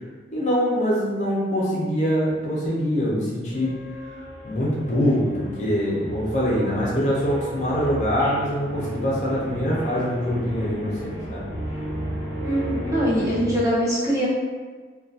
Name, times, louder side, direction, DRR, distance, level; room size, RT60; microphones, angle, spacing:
voice 1, 0.3-3.7 4.0-11.4, equal, 40° left, -6 dB, 0.5 m, -24 dB
sound 1, 3.5-13.6, equal, 75° right, 1.0 m, -34 dB
voice 2, 12.4-14.3, equal, 20° right, -9 dB, 0.7 m, -23 dB
2.7 x 2.2 x 2.4 m, 1.4 s
head